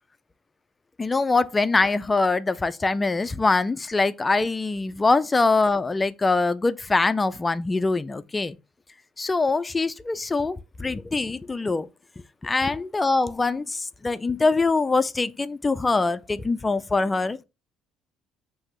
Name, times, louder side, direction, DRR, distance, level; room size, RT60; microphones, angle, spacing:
voice 1, 1.0-8.6 9.2-11.9 12.4-17.4, left 3 dB, 20° left, 0.3 m, -23 dB
5.8 x 2.7 x 3.0 m
supercardioid pair, 90°, 0 cm